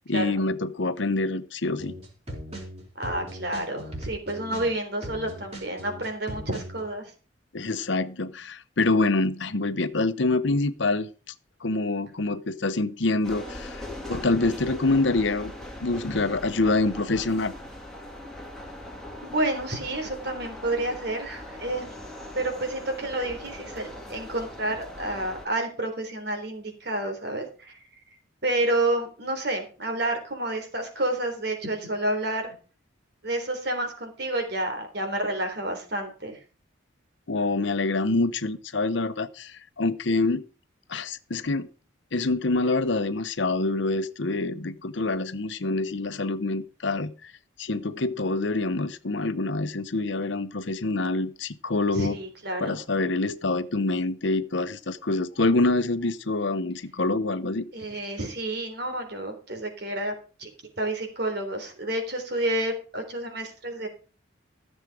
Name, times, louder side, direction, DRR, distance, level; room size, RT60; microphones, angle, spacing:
voice 1, 0.1-1.9 7.5-11.1 11.6-15.5 15.8-17.5 37.3-40.4 40.9-41.7 42.1-47.3 47.6-52.1 52.6-57.7, left 2 dB, 65° left, 0.9 m, -26 dB
sound 1, 1.8-6.9, equal, 30° right, 4.3 m, -38 dB
voice 2, 3.0-7.1 19.2-21.9 22.4-27.8 28.4-32.5 33.2-36.4 51.9-52.8 57.7-60.5 60.8-63.9, right 1 dB, 55° right, 3.7 m, -29 dB
sound 2, 13.2-25.5, left 1 dB, ahead, 3.2 m, -40 dB
14.5 x 7.3 x 4.9 m
head